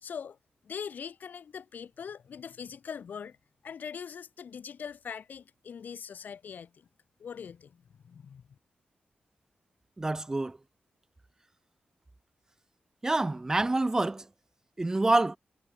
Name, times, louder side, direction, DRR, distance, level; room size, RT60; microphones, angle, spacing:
voice 1, 0.0-0.4 0.6-3.4 3.6-6.9 7.2-8.6, left 7 dB, 70° left, 1.8 m, -42 dB
voice 2, 10.0-10.6 13.0-14.3 14.8-15.4, right 2 dB, 20° right, 0.5 m, -27 dB
wide cardioid pair, 105°, 3 cm